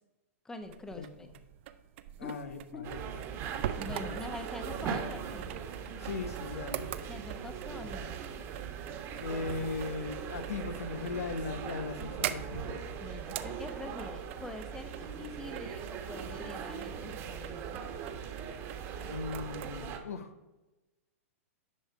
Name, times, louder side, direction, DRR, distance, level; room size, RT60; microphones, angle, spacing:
voice 1, 0.4-1.3 2.2-2.4 2.7-2.9 3.8-5.6 7.1-8.2 13.0-17.8, left 2 dB, 5° left, 7 dB, 0.9 m, -44 dB
sound 1, 0.6-19.7, right 11 dB, 55° right, 0.7 m, -44 dB
voice 2, 2.2-3.0 6.0-6.9 9.2-12.8 19.1-20.3, left 4 dB, 85° left, 9 dB, 1.0 m, -38 dB
sound 2, 2.8-20.0, right 7 dB, 35° right, 1.5 m, -40 dB
9.9 x 5.3 x 4.7 m, 1.1 s
hypercardioid pair, 135°, 8 cm